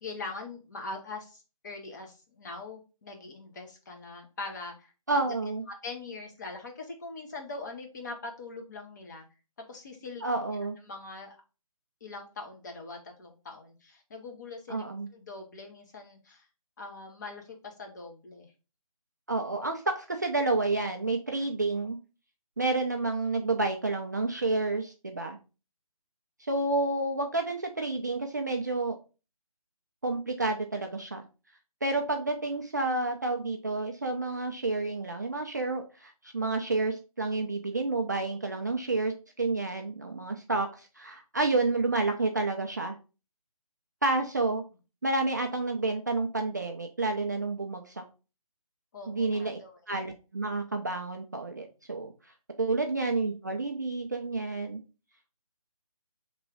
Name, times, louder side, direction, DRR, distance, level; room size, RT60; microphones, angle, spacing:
voice 1, 0.0-5.5 5.8-9.3 9.6-10.2 10.8-11.4 12.0-14.8 15.1-16.5 16.8-18.5 48.9-49.8, left 3 dB, 30° left, 3 dB, 0.8 m, -42 dB
voice 2, 5.1-5.6 10.2-10.8 14.7-15.1 19.3-22.0 22.6-25.4 26.4-29.0 30.0-31.2 31.8-43.0 44.0-44.6 45.0-48.0 49.1-49.6 49.9-52.1 52.6-54.8, right 3 dB, 30° right, 4 dB, 0.3 m, -30 dB
3.1 x 3.0 x 4.6 m, 0.32 s
figure-of-eight pair, 165°, 19 cm